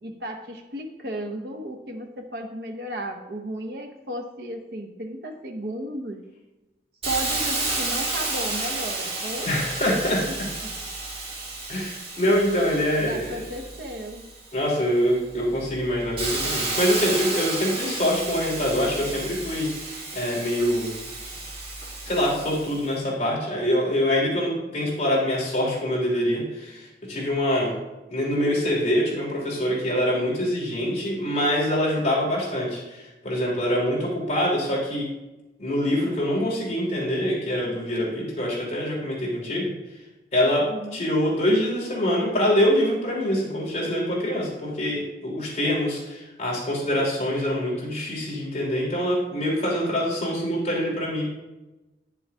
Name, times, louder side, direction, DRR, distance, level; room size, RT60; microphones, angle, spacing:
voice 1, 0.0-6.2 7.0-9.5 13.0-14.3 40.7-41.0, right 1 dB, 60° right, 3 dB, 1.1 m, -34 dB
Hiss, 7.0-14.6 15.1-22.8, right 2 dB, 35° right, 1.8 m, -32 dB
voice 2, 9.4-10.5 11.7-13.4 14.5-20.9 22.0-27.7 28.1-35.1 35.6-39.7 40.3-40.7 40.9-51.3, equal, 40° left, -4 dB, 3.0 m, -25 dB
10.0 x 7.0 x 3.5 m, 1.0 s
head